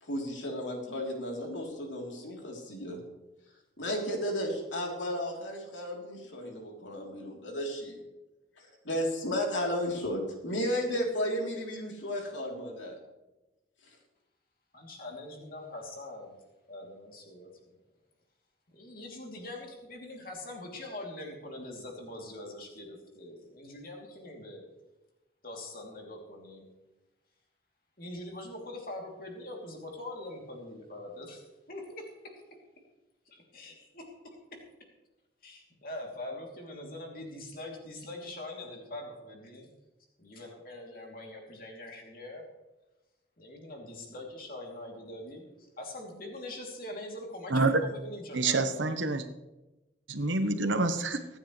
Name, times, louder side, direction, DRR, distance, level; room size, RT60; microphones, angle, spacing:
voice 1, 0.0-3.0 3.8-8.0 8.9-13.0, equal, 85° left, 0 dB, 3.4 m, -33 dB
voice 2, 14.7-16.4 16.7-17.5 18.7-24.6 25.4-26.7 28.0-31.4 31.7-32.0 33.3-34.4 35.4-39.7 40.2-42.4 43.4-45.4 45.8-48.8, left 1 dB, 50° left, 0 dB, 2.9 m, -43 dB
voice 3, 47.5-47.8 48.3-49.2 50.1-51.2, right 3 dB, 80° right, 8 dB, 1.1 m, -27 dB
24.0 x 9.6 x 3.2 m, 1.0 s
head